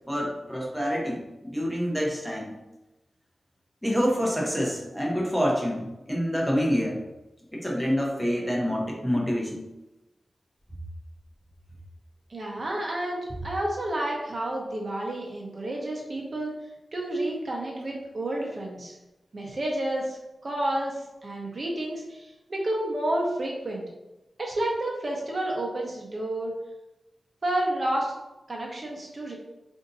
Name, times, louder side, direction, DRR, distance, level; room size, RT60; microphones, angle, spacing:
voice 1, 0.1-2.6 3.8-7.0 7.5-9.6, equal, 5° left, -2 dB, 0.8 m, -27 dB
voice 2, 12.3-16.5 16.9-19.0 19.3-20.2 20.4-23.8 24.4-26.5 27.4-28.1 28.5-29.4, right 1 dB, 45° right, -1 dB, 0.8 m, -30 dB
5.0 x 2.7 x 2.6 m, 1.0 s
wide cardioid pair, 90°, 0 cm